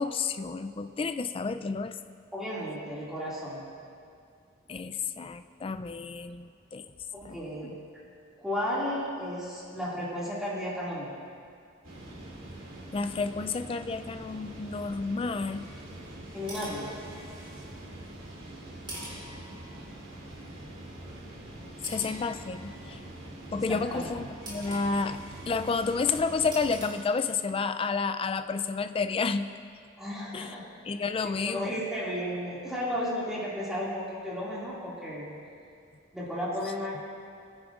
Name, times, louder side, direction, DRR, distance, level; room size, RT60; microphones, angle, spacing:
voice 1, 0.0-1.9 4.7-6.8 7.2-7.4 7.6-7.7 12.9-15.7 21.8-23.0 23.5-25.2 25.5-29.5 30.3-30.5 30.9-31.7, left 4 dB, 25° left, 10 dB, 0.3 m, -30 dB
voice 2, 2.3-3.6 7.1-7.7 8.4-11.1 16.3-16.9 23.5-24.2 30.0-30.6 31.2-35.4 36.1-37.1, equal, 5° right, -8 dB, 2.2 m, -34 dB
sound 1, 11.8-26.9, right 1 dB, 85° right, 2.4 m, -44 dB
sound 2, 16.2-17.7 18.9-20.1 21.8-23.1 24.5-25.8 26.5-26.9, right 1 dB, 25° right, 3.0 m, -45 dB
20.0 x 9.7 x 2.5 m, 2.3 s
head